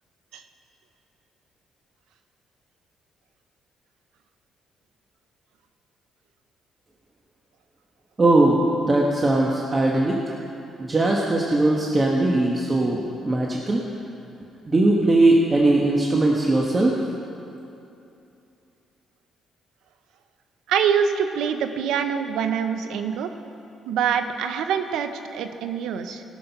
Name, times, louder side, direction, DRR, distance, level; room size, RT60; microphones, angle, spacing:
voice 1, 8.2-10.4 10.8-13.8 14.6-16.9, right 2 dB, 30° right, -2 dB, 1.2 m, -20 dB
voice 2, 20.7-23.3 23.9-26.2, right 7 dB, 85° right, 8 dB, 0.7 m, -25 dB
18.0 x 6.3 x 5.8 m, 2.8 s
cardioid pair, 90°, 0 cm